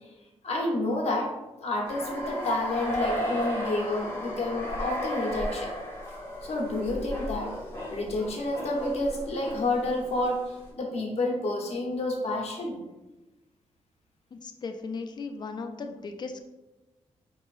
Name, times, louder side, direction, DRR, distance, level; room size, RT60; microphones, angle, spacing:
voice 1, 0.4-1.3 1.6-5.7 6.4-7.5 7.9-12.8, left 2 dB, 60° left, -1 dB, 0.8 m, -29 dB
sound 1, 1.8-10.3, left 1 dB, 20° left, 0.9 m, -34 dB
voice 2, 14.3-16.5, left 4 dB, 40° left, 6 dB, 0.3 m, -37 dB
4.6 x 2.8 x 2.4 m, 1.1 s
wide cardioid pair, 170°, 12 cm